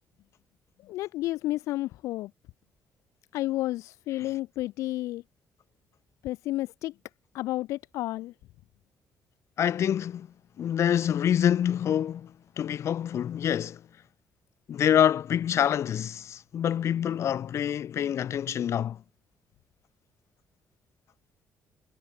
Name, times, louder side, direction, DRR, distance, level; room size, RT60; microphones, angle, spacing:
voice 1, 0.8-2.3 3.3-5.2 6.2-6.9 7.3-8.3, left 16 dB, 90° left, 2.4 m, -31 dB
voice 2, 9.6-10.3 10.6-13.8 14.7-19.0, left 9 dB, 65° left, 7.3 m, -26 dB
cardioid pair, 80°, 5 cm